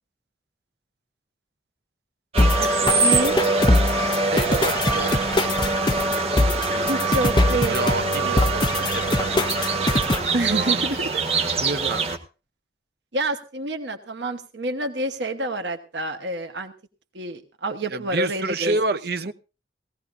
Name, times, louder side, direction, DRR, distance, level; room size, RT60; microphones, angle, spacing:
sound 1, 2.3-12.2, right 3 dB, 35° right, 1.4 m, -24 dB
sound 2, 2.4-10.4, left 2 dB, 25° left, 0.7 m, -23 dB
voice 1, 3.0-3.4 6.8-7.8 10.3-11.2 13.1-16.7 17.1-18.8, right 1 dB, 85° right, 6 dB, 1.3 m, -28 dB
voice 2, 4.3-5.1 7.7-8.6 8.9-9.9 11.6-12.0 17.9-19.3, right 3 dB, 60° right, 11 dB, 0.8 m, -28 dB
19.0 x 16.0 x 2.6 m, 0.33 s
head